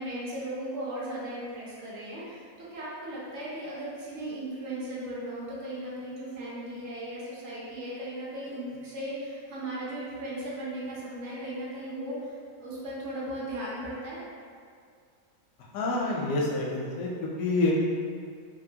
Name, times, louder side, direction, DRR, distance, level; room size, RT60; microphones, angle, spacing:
voice 1, 0.0-14.2, right 1 dB, 60° right, -7 dB, 0.9 m, -37 dB
voice 2, 15.7-17.8, left 2 dB, 80° left, -3 dB, 1.0 m, -27 dB
2.9 x 2.6 x 2.6 m, 2.2 s
omnidirectional pair, 1.5 m